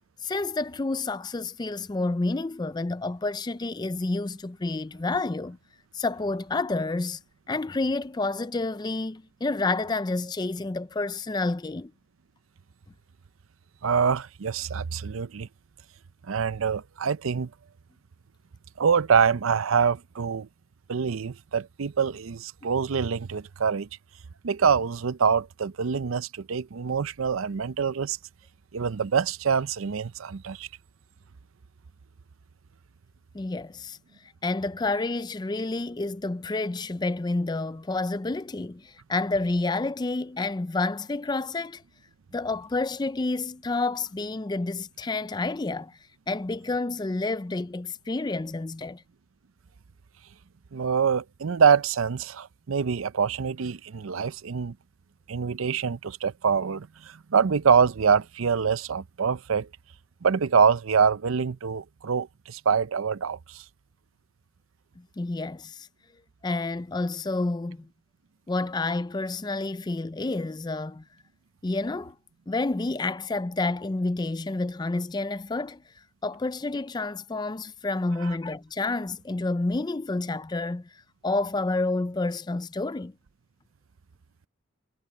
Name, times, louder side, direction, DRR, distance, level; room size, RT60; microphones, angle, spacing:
voice 1, 0.2-5.6 5.9-7.2 7.5-11.9 33.3-34.0 34.4-41.8 42.3-46.0 46.3-49.0 65.0-65.9 66.4-67.9 68.5-71.0 71.6-72.2 72.5-75.8 76.2-83.1, left 3 dB, 20° left, 0.4 m, -29 dB
voice 2, 13.8-15.5 16.3-17.5 18.8-20.5 20.9-23.9 24.4-28.2 28.7-30.7 50.7-54.8 55.3-59.7 60.2-63.6, right 6 dB, 80° right, 0.5 m, -25 dB
head